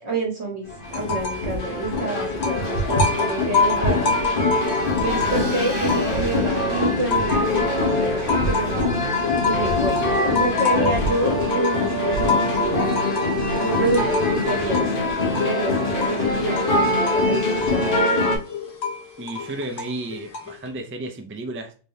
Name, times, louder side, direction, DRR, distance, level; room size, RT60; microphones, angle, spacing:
voice 1, 0.0-4.0 5.0-8.9 9.4-12.8 13.5-14.9 15.4-18.0, right 3 dB, 70° right, 1.5 m, -28 dB
sound 1, 0.7-18.4, left 2 dB, 55° left, 1.0 m, -23 dB
sound 2, 0.9-1.5 1.8-6.4 6.8-20.7, left 5 dB, 75° left, 1.1 m, -28 dB
sound 3, 4.4-11.5, right 3 dB, 20° left, 1.4 m, -40 dB
voice 2, 13.8-14.1 19.2-21.7, right 1 dB, 20° right, 0.3 m, -33 dB
3.4 x 3.4 x 2.7 m
omnidirectional pair, 1.2 m